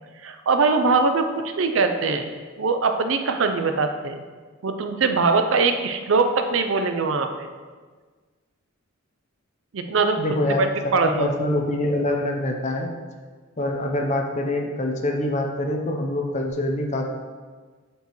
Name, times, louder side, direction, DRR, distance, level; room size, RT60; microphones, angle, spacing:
voice 1, 0.2-1.3 1.6-2.3 2.6-4.2 4.6-7.5 9.7-10.2 10.6-10.7 10.9-11.3, right 4 dB, 65° right, 6 dB, 0.5 m, -22 dB
voice 2, 10.2-10.7 11.0-12.9 13.6-17.1, left 1 dB, 35° left, 2 dB, 0.6 m, -25 dB
8.2 x 4.5 x 3.1 m, 1.5 s
head